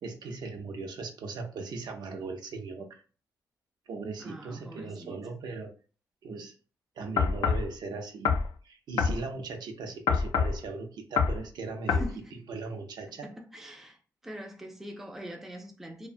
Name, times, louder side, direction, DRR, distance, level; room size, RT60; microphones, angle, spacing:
voice 1, 0.0-3.0 3.9-5.8 6.2-6.5 7.0-8.4 8.6-12.0 12.3-13.3, right 4 dB, 75° right, 0.5 m, -38 dB
voice 2, 4.2-5.2 11.9-12.3 13.2-14.0 14.2-16.1, right 1 dB, 5° right, 0.3 m, -43 dB
sound 1, 7.2-7.7 8.3-8.5 9.0-9.2 10.1-10.6 11.2-11.4 11.9-12.1, left 5 dB, 85° left, 0.4 m, -25 dB
2.7 x 2.1 x 2.5 m
wide cardioid pair, 175°, 7 cm